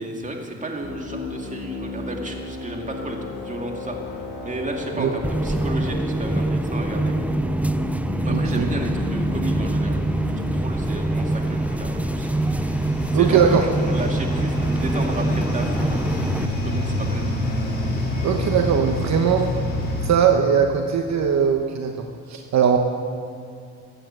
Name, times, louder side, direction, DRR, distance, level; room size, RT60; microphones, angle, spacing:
voice 1, 0.0-7.1 8.2-10.1 10.5-12.3 13.1-17.3, right 1 dB, 25° right, 2 dB, 2.3 m, -32 dB
sound 1, 0.8-10.5, left 2 dB, 55° left, 3.1 m, -33 dB
sound 2, 3.9-20.1, left 1 dB, 30° left, 3.9 m, -29 dB
sound 3, 5.2-16.5, right 2 dB, 5° right, 0.4 m, -25 dB
voice 2, 8.3-8.7 13.1-13.6 18.2-19.5 20.0-22.8, right 7 dB, 65° right, 4 dB, 1.1 m, -20 dB
15.0 x 9.0 x 7.7 m, 2.5 s
cardioid pair, 90°, 30 cm